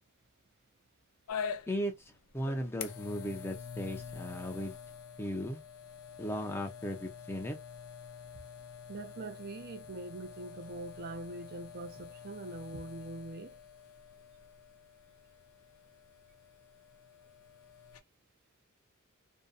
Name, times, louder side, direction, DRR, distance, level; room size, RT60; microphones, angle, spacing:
sound 1, 1.3-18.0, left 7 dB, 75° left, 0.4 m, -46 dB
voice 1, 2.3-4.8 5.2-5.6 6.2-7.6, equal, 10° left, 0.6 m, -36 dB
voice 2, 8.9-13.6, right 2 dB, 45° right, 0.5 m, -43 dB
2.7 x 2.2 x 2.3 m
head